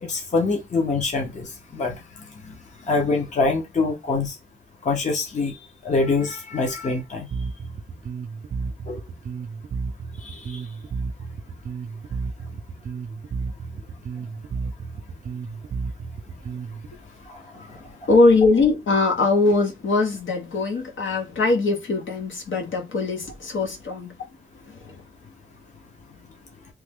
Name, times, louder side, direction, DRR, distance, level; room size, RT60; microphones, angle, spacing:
voice 1, 0.0-1.4 1.7-2.0 2.5-2.6 2.9-4.3 4.8-7.3 8.9-9.0 10.2-10.6 17.3-17.7, left 3 dB, 35° left, 0.7 m, -25 dB
Bass guitar, 7.3-16.9, right 5 dB, 40° right, 0.4 m, -32 dB
voice 2, 18.1-24.1 24.8-24.9, left 3 dB, 65° left, 1.1 m, -21 dB
3.1 x 2.1 x 3.5 m
wide cardioid pair, 165°, 21 cm